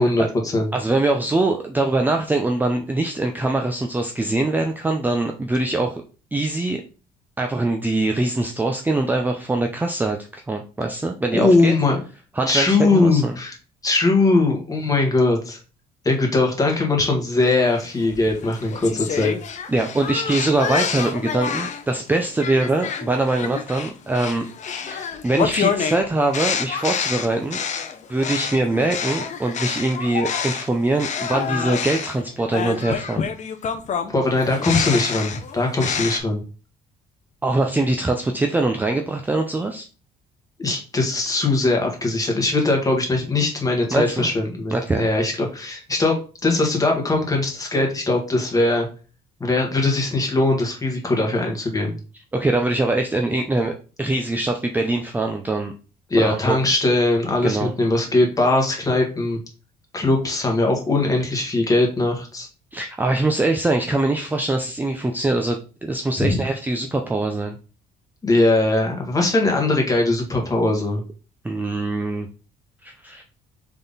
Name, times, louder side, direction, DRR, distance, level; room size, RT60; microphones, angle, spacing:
voice 1, 0.0-0.7 11.3-12.0 12.5-13.5 13.8-15.6 16.0-19.3 34.1-36.4 40.6-46.2 46.4-48.9 49.4-52.0 56.1-59.4 59.9-62.5 66.2-66.5 68.2-71.0, left 2 dB, 20° left, 1 dB, 1.6 m, -20 dB
voice 2, 0.7-6.0 6.3-6.8 7.4-11.7 12.4-13.4 19.7-27.6 28.1-33.3 37.4-39.9 43.9-44.3 44.7-45.1 52.3-53.7 54.0-55.7 56.2-56.6 57.4-57.7 62.7-67.6 71.4-72.3 72.8-73.2, right 2 dB, 10° right, 4 dB, 0.5 m, -23 dB
sound 1, 17.8-21.9 22.4-30.7 31.0-36.2, left 7 dB, 45° left, 0.7 m, -27 dB
3.6 x 3.4 x 4.0 m, 0.35 s
cardioid pair, 110°, 17 cm